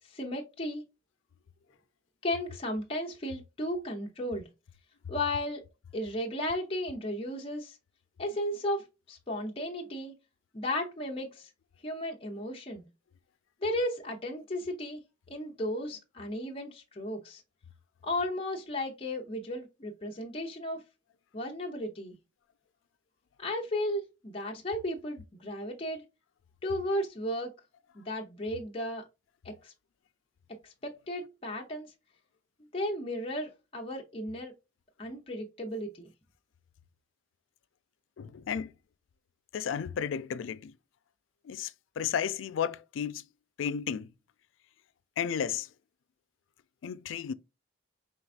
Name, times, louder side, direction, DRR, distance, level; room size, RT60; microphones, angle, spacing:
voice 1, 0.1-0.8 2.2-4.5 5.1-5.6 5.9-7.8 8.2-10.1 10.5-11.5 11.8-12.8 13.6-15.0 15.3-17.4 18.0-20.8 21.3-22.2 23.4-26.0 26.6-27.5 27.9-29.0 29.4-29.7 30.6-31.9 32.7-34.5 35.0-36.1, left 1 dB, 30° left, 0.7 m, -34 dB
voice 2, 38.2-38.7 39.5-40.7 41.4-43.2 43.6-44.1 45.2-45.7 46.8-47.3, left 8 dB, 90° left, 0.4 m, -33 dB
4.7 x 3.4 x 2.4 m
head